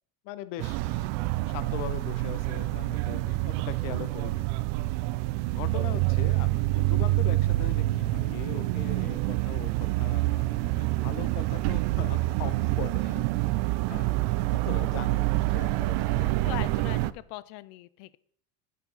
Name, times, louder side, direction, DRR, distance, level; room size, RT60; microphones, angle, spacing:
voice 1, 0.2-1.1 1.5-4.5 5.5-13.1 13.9-16.6, left 12 dB, 70° left, 14 dB, 0.9 m, -40 dB
sound 1, 0.6-17.1, right 3 dB, 10° right, 1.5 m, -53 dB
sound 2, 0.6-17.1, right 19 dB, 65° right, 0.5 m, -27 dB
voice 2, 16.4-18.2, left 18 dB, 55° left, 18 dB, 0.5 m, -40 dB
8.3 x 4.6 x 5.6 m, 0.66 s
supercardioid pair, 115°, 49 cm